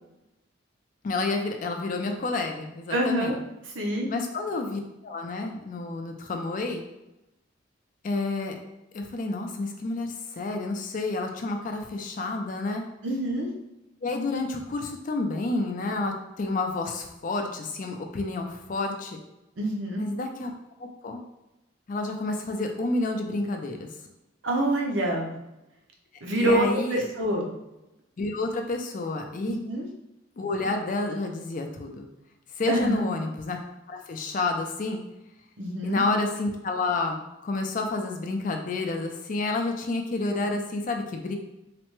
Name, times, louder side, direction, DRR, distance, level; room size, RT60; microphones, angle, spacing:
voice 1, 1.0-3.4 4.1-6.8 8.0-8.6 8.9-12.8 14.0-19.2 20.0-20.5 20.8-21.2 21.9-23.9 26.3-27.1 28.2-29.6 30.4-32.1 32.6-33.6 33.9-35.0 35.8-41.4, left 2 dB, 45° left, 4 dB, 0.4 m, -29 dB
voice 2, 2.9-3.4 3.7-4.1 13.0-13.5 19.6-20.0 24.4-25.4 26.2-27.5 29.7-29.9 32.7-33.0 35.6-36.0, right 1 dB, 80° right, 0 dB, 0.7 m, -26 dB
3.2 x 2.1 x 3.0 m, 0.93 s
head